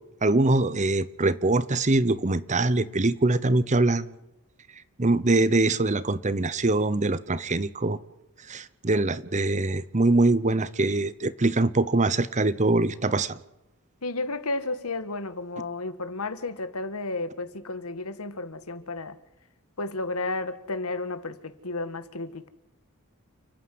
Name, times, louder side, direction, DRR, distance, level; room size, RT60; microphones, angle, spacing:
voice 1, 0.2-4.1 5.0-8.0 8.5-13.3, right 2 dB, 30° right, 0.9 m, -23 dB
voice 2, 14.0-19.2 19.8-22.5, left 2 dB, 75° left, 1.7 m, -32 dB
29.5 x 9.9 x 9.4 m
head